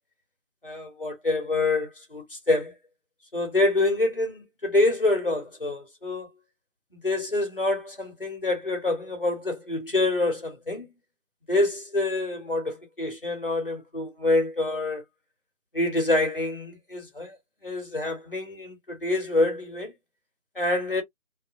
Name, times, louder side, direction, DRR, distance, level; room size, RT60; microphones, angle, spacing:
voice 1, 0.6-2.8 3.3-6.3 6.9-10.9 11.5-15.0 15.7-17.4 17.6-19.9 20.6-21.0, left 2 dB, 40° left, 0.9 m, -26 dB
2.7 x 2.0 x 2.4 m
figure-of-eight pair, 170°, 42 cm